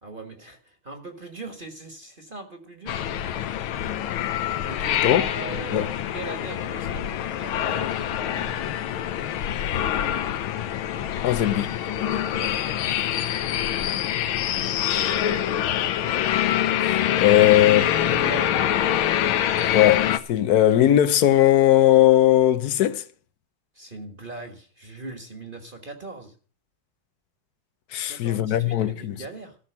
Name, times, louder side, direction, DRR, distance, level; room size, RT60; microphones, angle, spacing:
voice 1, 0.0-2.9 4.6-8.6 12.3-12.7 13.7-13.9 14.4-14.5 15.4-15.6 17.5-17.6 18.0-18.6 23.7-26.3 28.1-29.6, right 2 dB, 30° right, 1.5 m, -40 dB
sound 1, 2.9-20.2, left 10 dB, 85° left, 1.7 m, -25 dB
voice 2, 11.2-11.8 16.8-17.8 19.7-23.0 27.9-29.1, left 12 dB, 60° left, 1.1 m, -19 dB
13.5 x 6.0 x 8.8 m
omnidirectional pair, 2.2 m